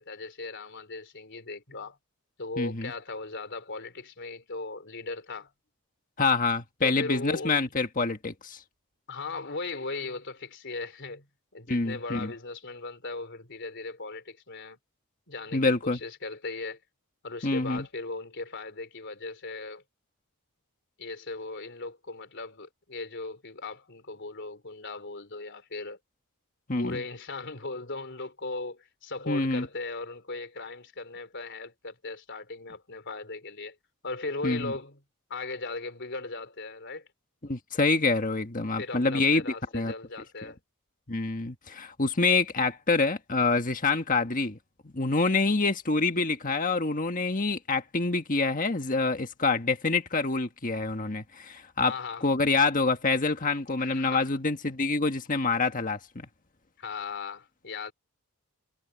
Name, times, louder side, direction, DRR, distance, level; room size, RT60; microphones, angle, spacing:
voice 1, 0.0-2.0 2.4-5.5 6.8-7.7 9.1-11.3 11.5-14.8 15.3-16.8 17.2-19.8 21.0-26.0 26.7-33.8 34.0-35.0 35.3-37.1 38.8-40.6 51.8-52.3 53.8-54.2 56.8-57.9, left 3 dB, 55° left, 3.6 m, -38 dB
voice 2, 2.6-2.9 6.2-8.6 11.7-12.3 15.5-16.0 17.4-17.9 26.7-27.0 29.3-29.7 34.4-34.7 37.4-39.4 39.7-39.9 41.1-44.6 44.8-51.9 52.2-56.2, left 3 dB, 40° left, 1.5 m, -26 dB
head